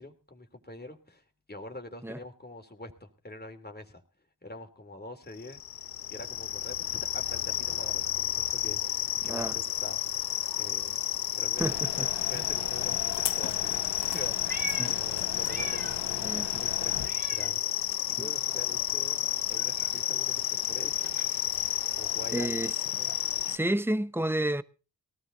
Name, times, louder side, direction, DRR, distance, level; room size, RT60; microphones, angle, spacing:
voice 1, 0.0-4.0 4.4-5.6 6.1-11.0 11.3-17.6 18.1-21.2 21.9-22.6 23.0-23.1, left 2 dB, 25° left, 3.0 m, -45 dB
sound 1, 5.4-23.6, left 11 dB, 60° left, 0.7 m, -31 dB
voice 2, 9.2-9.5 11.6-12.1 14.8-14.9 16.2-16.6 18.2-18.3 22.3-22.7 23.5-24.6, right 1 dB, 5° right, 0.9 m, -30 dB
sound 2, 11.6-17.1, left 11 dB, 90° left, 0.9 m, -39 dB
Meow, 14.0-16.2 16.5-18.2 18.4-22.6, right 3 dB, 20° right, 2.8 m, -45 dB
18.5 x 13.5 x 3.9 m
supercardioid pair, 40°, 41 cm